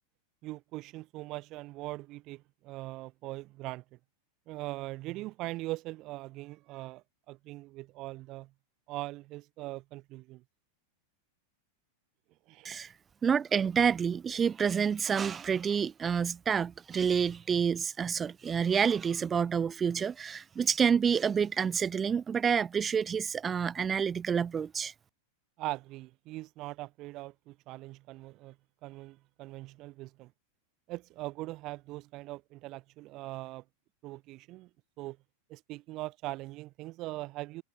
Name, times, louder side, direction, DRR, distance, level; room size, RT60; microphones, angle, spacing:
voice 1, 0.4-4.0 4.5-8.5 8.9-10.4 12.5-12.8 25.6-28.6 28.8-30.3 30.9-33.6 34.0-34.7 35.0-35.2 35.5-37.6, right 19 dB, 40° right, 4.5 m, -41 dB
voice 2, 13.2-24.9, right 7 dB, 20° right, 0.7 m, -28 dB
figure-of-eight pair, 90°, 0 cm